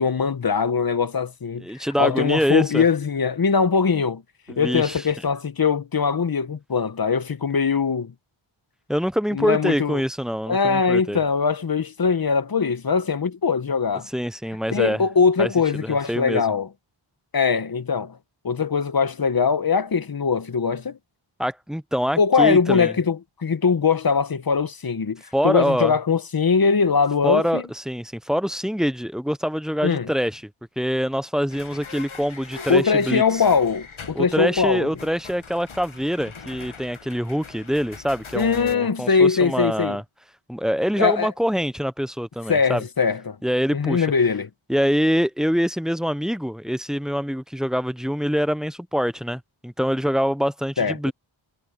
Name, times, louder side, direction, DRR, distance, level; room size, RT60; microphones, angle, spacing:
voice 1, 0.0-4.2 4.5-8.1 9.3-10.0 10.5-14.1 14.7-16.7 17.3-18.2 18.4-21.0 22.2-27.6 29.8-30.1 32.7-34.9 38.3-40.0 41.0-41.3 42.5-43.4 43.7-44.5 50.8-51.1, left 5 dB, 45° left, 1.0 m, -21 dB
voice 2, 1.6-2.8 4.5-5.0 8.9-11.2 14.1-15.0 15.4-15.5 15.8-16.4 21.4-22.9 25.3-26.0 27.2-30.4 30.8-33.4 34.1-40.0 40.5-42.8 43.4-44.1 44.7-51.1, equal, ahead, 0.6 m, -25 dB
sound 1, 31.5-38.8, left 5 dB, 75° left, 1.6 m, -42 dB
wide cardioid pair, 70°, 49 cm